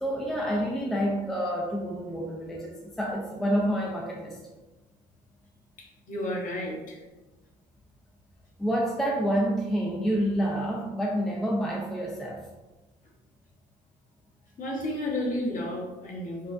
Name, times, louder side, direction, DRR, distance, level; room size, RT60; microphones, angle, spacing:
voice 1, 0.0-4.4 8.6-12.4, equal, ahead, -2 dB, 0.5 m, -28 dB
voice 2, 5.8-7.0 14.6-16.5, left 1 dB, 50° left, -3 dB, 1.2 m, -32 dB
4.6 x 2.4 x 2.5 m, 1.1 s
cardioid pair, 110°, 17 cm